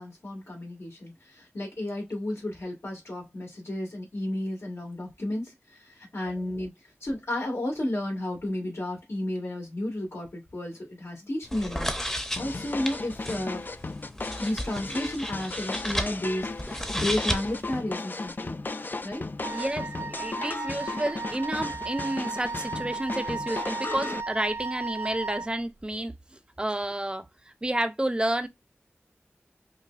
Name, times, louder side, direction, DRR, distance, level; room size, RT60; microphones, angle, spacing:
voice 1, 0.0-6.7 7.0-11.9 12.4-13.6 14.4-18.6 19.0-19.2, left 1 dB, 80° left, 2.0 m, -32 dB
sound 1, 11.4-17.8, equal, 10° left, 0.7 m, -34 dB
sound 2, 12.4-24.2, left 3 dB, 45° left, 0.3 m, -36 dB
Wind instrument woodwind instrument, 19.4-25.5, right 4 dB, 75° right, 0.3 m, -35 dB
voice 2, 19.5-27.2 27.6-28.5, right 1 dB, 20° right, 0.6 m, -30 dB
5.5 x 2.2 x 2.5 m
wide cardioid pair, 55°, 4 cm